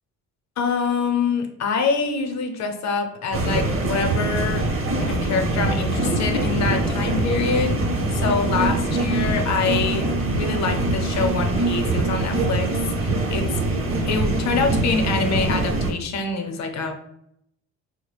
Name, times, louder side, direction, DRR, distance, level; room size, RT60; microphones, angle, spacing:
voice 1, 0.6-4.7 4.9-7.8 8.1-13.5 14.1-16.9, left 5 dB, 65° left, 5 dB, 0.6 m, -25 dB
sound 1, 3.3-15.9, right 2 dB, 45° right, 0.8 m, -23 dB
3.8 x 2.1 x 3.3 m, 0.75 s
cardioid pair, 90°, 30 cm